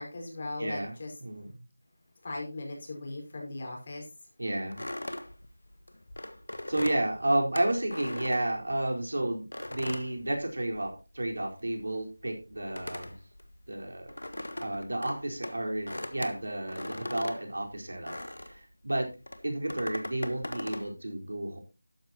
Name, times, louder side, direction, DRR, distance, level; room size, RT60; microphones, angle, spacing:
voice 1, 0.0-1.2 2.2-4.1, left 2 dB, 35° left, 0 dB, 4.8 m, -38 dB
voice 2, 0.6-0.9 1.2-1.5 4.4-5.1 6.7-13.2 13.7-14.1 14.6-18.2 18.4-19.1 19.4-21.6, right 1 dB, 75° right, 2 dB, 4.4 m, -32 dB
sound 1, 4.7-9.0 9.5-11.0 11.3-18.6 19.2-20.9, left 1 dB, 85° left, 1.6 m, -40 dB
13.0 x 10.0 x 2.9 m, 0.30 s
figure-of-eight pair, 170°, 0 cm